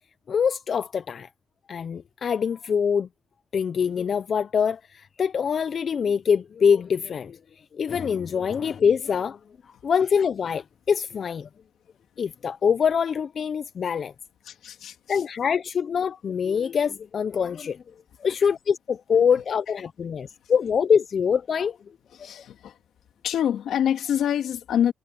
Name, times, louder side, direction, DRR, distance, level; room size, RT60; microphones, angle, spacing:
voice 1, 0.3-1.3 1.7-3.1 3.5-7.4 7.7-9.4 9.8-11.5 12.2-14.1 15.1-17.8 18.2-21.8, left 7 dB, 55° left, 0.5 m, -24 dB
voice 2, 14.4-15.2 22.1-22.8 23.2-24.9, left 9 dB, 85° left, 2.7 m, -26 dB
cardioid pair, 90°, 0 cm